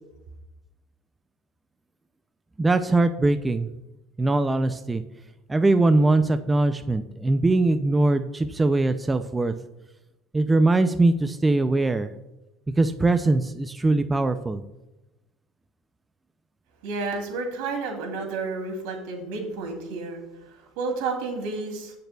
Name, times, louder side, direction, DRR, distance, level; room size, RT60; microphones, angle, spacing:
voice 1, 2.6-3.7 4.2-5.0 5.5-9.5 10.3-12.1 12.8-14.6, right 2 dB, 10° right, 9 dB, 0.3 m, -21 dB
voice 2, 16.8-21.9, right 3 dB, 80° right, 2 dB, 2.6 m, -31 dB
16.0 x 6.6 x 2.3 m, 0.97 s
cardioid pair, 155°, 0 cm